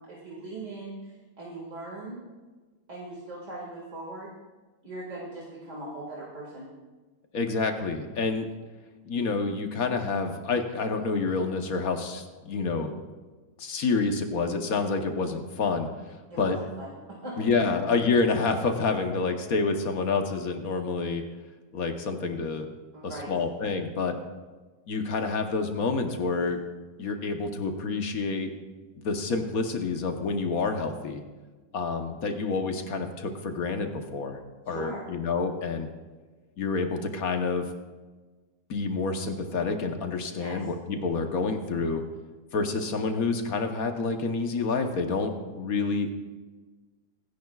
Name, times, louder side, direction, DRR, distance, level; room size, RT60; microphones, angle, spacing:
voice 1, 0.0-2.2 2.9-4.3 4.8-6.7 16.3-17.5 22.9-23.3 34.7-35.0 40.3-40.6, right 2 dB, 50° right, -4 dB, 2.4 m, -40 dB
voice 2, 7.3-8.5 9.1-12.9 13.6-15.9 16.4-16.6 17.4-21.2 21.7-22.7 23.0-24.2 24.9-26.6 27.0-28.5 29.0-31.2 31.7-34.4 34.7-35.9 36.6-37.7 38.7-42.0 42.5-46.1, left 4 dB, 65° left, 5 dB, 1.4 m, -28 dB
25.0 x 10.5 x 2.4 m, 1.3 s
omnidirectional pair, 1.7 m